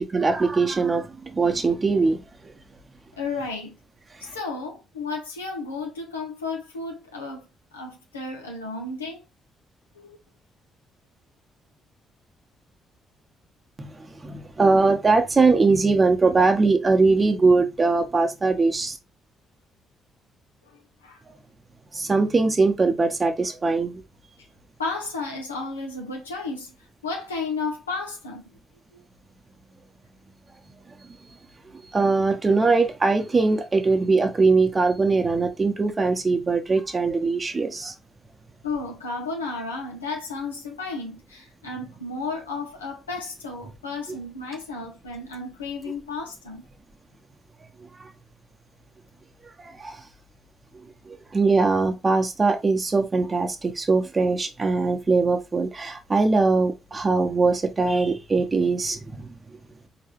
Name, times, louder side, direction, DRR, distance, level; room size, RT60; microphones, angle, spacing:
voice 1, 0.0-2.5 13.8-19.0 21.9-24.0 31.9-37.9 48.0-48.1 49.6-50.0 51.1-59.3, right 3 dB, 35° right, 1.0 m, -21 dB
voice 2, 3.2-3.8 4.2-9.2 9.9-10.2 20.6-21.2 24.8-26.7 27.0-28.4 28.9-29.0 38.6-46.6, left 3 dB, 90° left, 0.8 m, -33 dB
4.5 x 3.0 x 3.0 m
figure-of-eight pair, 40°, 0 cm